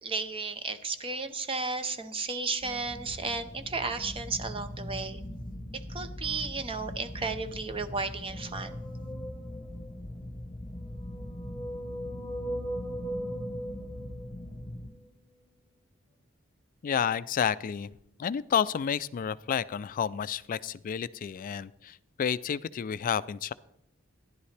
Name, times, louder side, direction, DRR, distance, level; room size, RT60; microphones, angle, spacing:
voice 1, 0.0-5.2 5.7-8.8, right 4 dB, 25° right, 9 dB, 0.7 m, -34 dB
sound 1, 2.6-14.9, left 1 dB, 25° left, 1.1 m, -41 dB
sound 2, 8.4-10.0 10.8-14.7, right 1 dB, 10° right, 2.1 m, -39 dB
voice 2, 16.8-17.9 18.2-23.5, left 8 dB, 40° left, 17 dB, 0.3 m, -30 dB
14.0 x 11.0 x 3.3 m, 0.78 s
head